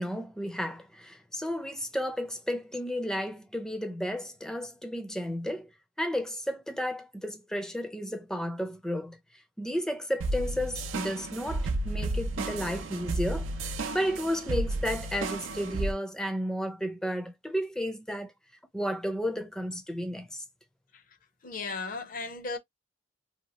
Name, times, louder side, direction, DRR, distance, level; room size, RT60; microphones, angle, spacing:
voice 1, 0.0-5.7 6.0-9.2 9.6-18.3 18.7-20.4, equal, 5° left, 0.5 m, -33 dB
sound 1, 10.2-15.9, right 2 dB, 85° right, 0.5 m, -32 dB
voice 2, 21.4-22.6, left 3 dB, 45° left, 0.6 m, -35 dB
2.8 x 2.2 x 2.9 m
head